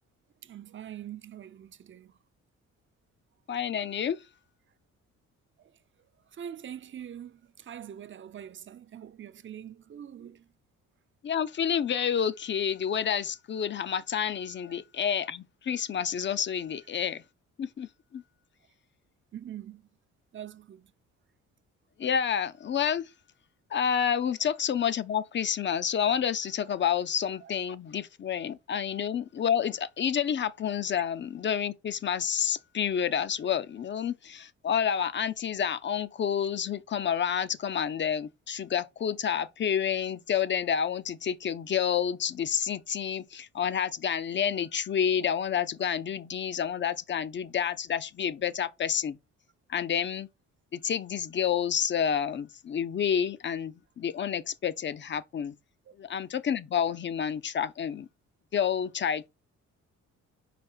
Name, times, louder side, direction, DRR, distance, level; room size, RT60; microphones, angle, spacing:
voice 1, 0.4-2.1 5.6-5.7 6.3-10.5 14.7-14.8 19.3-19.8 20.3-20.9 27.4-27.5 55.9-56.0, right 10 dB, 40° right, 0.6 m, -44 dB
voice 2, 3.5-4.2 11.2-17.2 17.6-18.2 22.0-23.1 23.7-49.2 49.7-50.3 50.7-55.5 56.0-58.1 58.5-59.3, left 8 dB, 40° left, 0.6 m, -29 dB
5.1 x 4.7 x 4.4 m
cardioid pair, 90°, 30 cm